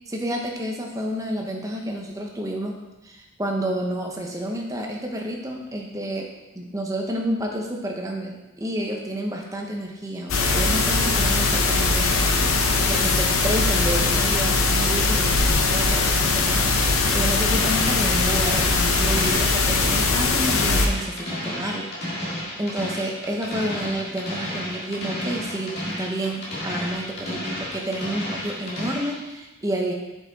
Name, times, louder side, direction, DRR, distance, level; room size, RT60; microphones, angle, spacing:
voice 1, 0.1-2.8 3.0-6.3 6.6-21.8 22.6-29.9, right 1 dB, 15° right, 0 dB, 0.9 m, -30 dB
sound 1, 10.3-20.9, left 3 dB, 75° left, 0.8 m, -21 dB
sound 2, 17.2-29.2, left 1 dB, 50° left, 2.0 m, -32 dB
6.9 x 5.6 x 4.1 m, 1.0 s
head